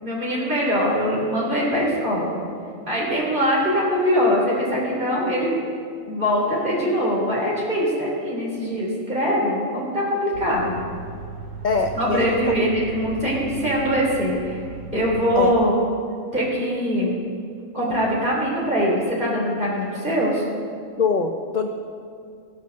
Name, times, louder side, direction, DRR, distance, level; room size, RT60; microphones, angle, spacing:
voice 1, 0.0-2.4 2.9-5.5 6.1-10.7 11.9-14.6 14.9-15.7 16.3-17.2 17.7-20.4, equal, 35° right, -5 dB, 3.3 m, -22 dB
sound 1, 10.3-15.5, right 4 dB, 90° right, 1.4 m, -37 dB
voice 2, 11.6-12.4 15.4-15.5 21.0-21.7, left 5 dB, 50° left, 4 dB, 0.5 m, -23 dB
16.5 x 5.4 x 6.4 m, 2.3 s
omnidirectional pair, 1.4 m